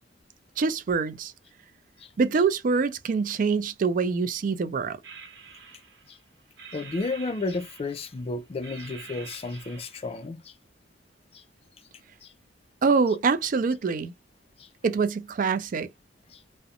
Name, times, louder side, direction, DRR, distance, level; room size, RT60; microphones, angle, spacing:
voice 1, 0.6-1.3 2.2-5.0 12.8-14.1 14.8-15.9, right 4 dB, 45° right, 0.3 m, -25 dB
sound 1, 5.0-6.2 6.6-8.2 8.6-10.2, right 5 dB, 70° right, 0.9 m, -46 dB
voice 2, 6.7-10.5 11.3-11.4 12.2-12.3 14.6-14.7 16.3-16.4, left 3 dB, 30° left, 0.3 m, -32 dB
2.4 x 2.1 x 2.7 m
head